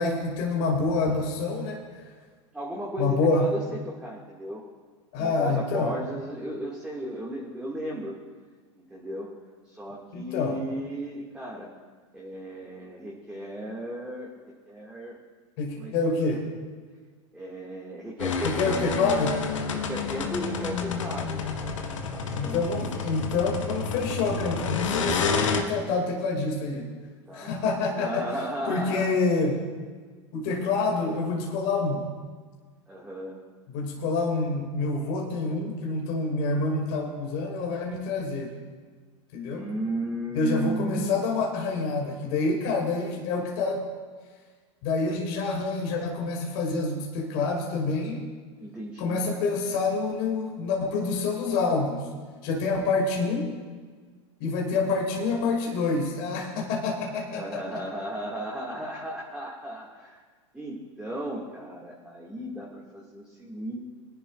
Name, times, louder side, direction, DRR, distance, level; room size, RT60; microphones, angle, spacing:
voice 1, 0.0-1.8 3.0-3.5 5.1-5.9 10.1-10.6 15.6-16.5 18.4-19.3 22.3-26.9 27.3-28.2 28.7-29.6 30.3-32.1 33.7-38.5 39.3-39.6 40.3-43.8 44.8-48.3 49.0-52.1 52.4-53.5 54.4-57.4, left 3 dB, 55° left, 0 dB, 2.2 m, -27 dB
voice 2, 2.5-4.6 5.2-8.1 8.8-9.3 9.6-11.7 12.1-14.3 14.7-15.2 15.8-15.9 17.3-19.0 19.7-23.1 27.3-27.5 27.9-29.1 32.9-33.4 39.4-41.3 48.6-49.5 57.3-60.2 60.5-63.8, right 1 dB, 5° right, -4 dB, 1.9 m, -35 dB
sound 1, 18.2-25.6, left 5 dB, 80° left, 1.4 m, -29 dB
22.0 x 10.5 x 2.4 m, 1.5 s
hypercardioid pair, 105°, 16 cm